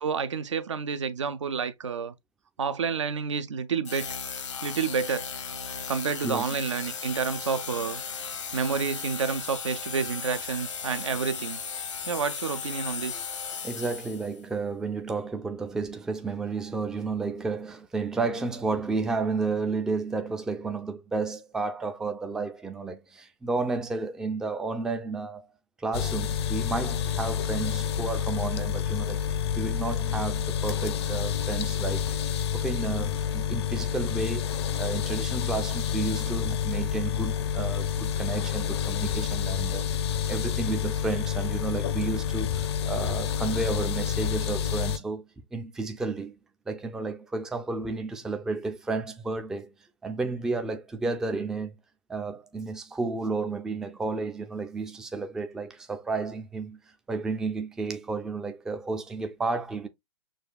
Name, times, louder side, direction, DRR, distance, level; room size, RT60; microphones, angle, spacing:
voice 1, 0.0-2.1 2.6-4.1 4.6-5.2 5.9-11.6 12.1-13.3, right 6 dB, 75° right, 0.6 m, -29 dB
sound 1, 3.8-14.4, left 6 dB, 75° left, 0.9 m, -36 dB
voice 2, 13.6-25.5 25.8-32.1 32.5-46.3 46.7-49.7 50.0-51.8 52.1-56.8 57.1-59.9, right 3 dB, 5° right, 0.3 m, -32 dB
sound 2, 25.9-45.0, left 8 dB, 60° left, 0.6 m, -29 dB
6.3 x 2.3 x 2.2 m
figure-of-eight pair, 120°, 16 cm